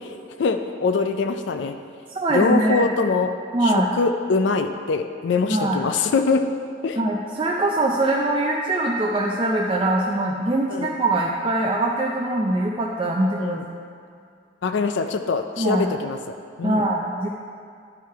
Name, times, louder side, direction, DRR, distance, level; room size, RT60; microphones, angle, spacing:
voice 1, 0.4-1.7 2.3-3.3 3.6-6.4 6.8-7.0 10.7-11.0 13.4-13.6 14.6-16.8, left 4 dB, 70° left, 7 dB, 0.4 m, -23 dB
voice 2, 2.1-2.9 3.5-3.9 5.5-5.9 7.0-13.6 15.6-15.9 16.6-17.3, right 2 dB, 25° right, -2 dB, 0.4 m, -22 dB
11.0 x 4.6 x 4.7 m, 2.4 s
head